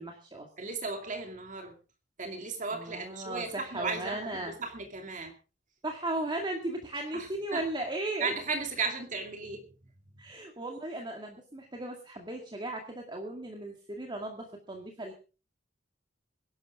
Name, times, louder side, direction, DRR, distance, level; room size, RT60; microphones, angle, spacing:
voice 1, 0.0-0.5 2.7-4.6 5.8-8.3 10.2-15.1, right 1 dB, 25° right, 1 dB, 2.0 m, -36 dB
voice 2, 0.6-1.7 2.2-5.3 7.1-7.6 8.2-9.6, right 4 dB, 45° right, 4 dB, 2.5 m, -35 dB
22.0 x 12.0 x 3.6 m, 0.34 s
head